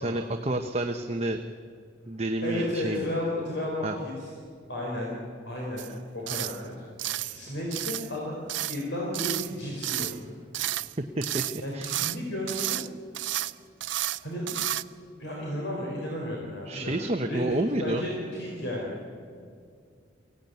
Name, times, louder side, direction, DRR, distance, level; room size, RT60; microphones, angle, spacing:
voice 1, 0.0-1.4 2.1-3.1 3.8-3.9 11.2-11.4 11.7-12.0 16.7-18.0, right 1 dB, 35° right, 5 dB, 0.9 m, -29 dB
voice 2, 2.4-4.3 4.7-5.2 5.4-10.4 11.6-12.8 14.2-14.6 15.2-17.0 17.3-18.9, left 1 dB, 75° left, -3 dB, 4.3 m, -33 dB
sound 1, 5.8-5.9 6.3-6.6 7.0-7.4 7.7-8.1 8.5-8.8 9.1-9.5 9.8-10.2 10.5-10.9 11.2-12.2 12.5-12.9 13.1-13.5 13.8-14.2 14.5-14.8, right 14 dB, 80° right, 0.5 m, -31 dB
23.0 x 16.5 x 9.3 m, 2.2 s
head